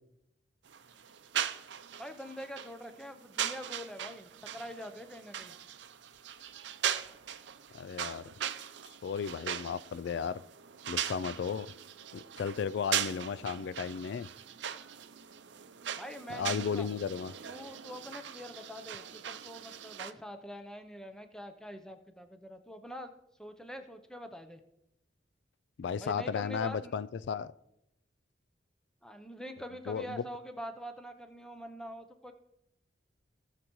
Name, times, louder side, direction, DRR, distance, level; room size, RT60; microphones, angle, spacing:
sound 1, 0.6-20.1, right 9 dB, 70° right, 0.6 m, -39 dB
voice 1, 2.0-5.5 16.0-16.9 17.5-23.1 23.4-24.6 26.0-26.9 29.0-32.3, equal, 5° left, 0.7 m, -45 dB
voice 2, 7.7-8.2 8.9-10.4 10.9-11.7 12.1-14.3 16.3-17.3 25.8-27.5 29.9-30.2, left 6 dB, 70° left, 0.3 m, -34 dB
18.0 x 6.6 x 3.1 m
head